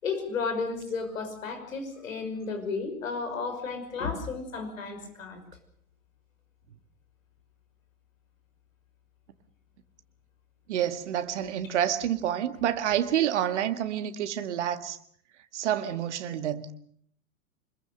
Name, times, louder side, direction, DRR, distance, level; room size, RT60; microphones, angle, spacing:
voice 1, 0.0-5.4, left 4 dB, 65° left, 6.0 m, -33 dB
voice 2, 10.7-15.0 15.5-16.7, right 10 dB, 50° right, 1.8 m, -28 dB
25.5 x 22.0 x 6.8 m
figure-of-eight pair, 100°, 43 cm